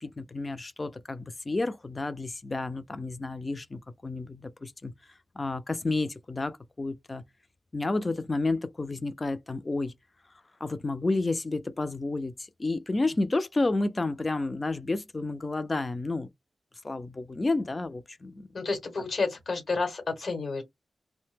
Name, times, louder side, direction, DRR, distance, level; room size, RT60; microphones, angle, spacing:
voice 1, 0.0-4.9 5.4-7.2 7.7-9.9 10.6-16.3 16.8-18.5, left 2 dB, 25° left, 0.4 m, -31 dB
voice 2, 18.5-20.6, left 4 dB, 60° left, 1.0 m, -30 dB
2.7 x 2.1 x 3.2 m
wide cardioid pair, 115°, 0 cm